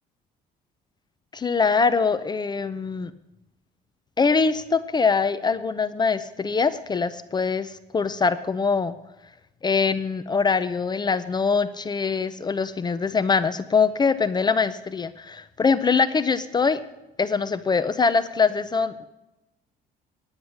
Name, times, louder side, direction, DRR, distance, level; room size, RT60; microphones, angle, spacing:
voice 1, 1.3-3.1 4.2-8.9 9.6-16.8 17.2-19.1, left 5 dB, 25° left, 14 dB, 0.6 m, -23 dB
9.7 x 9.6 x 6.4 m, 0.94 s
cardioid pair, 110°, 17 cm